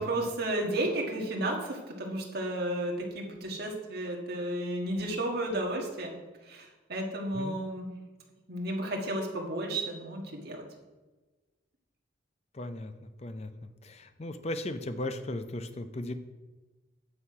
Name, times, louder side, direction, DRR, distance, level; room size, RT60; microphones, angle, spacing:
voice 1, 0.0-6.1 6.4-7.9 8.5-10.6, right 1 dB, 50° right, 0 dB, 1.7 m, -33 dB
voice 2, 12.5-13.5 13.8-16.1, left 1 dB, 30° left, 9 dB, 0.5 m, -37 dB
8.6 x 7.8 x 4.8 m, 1.2 s
head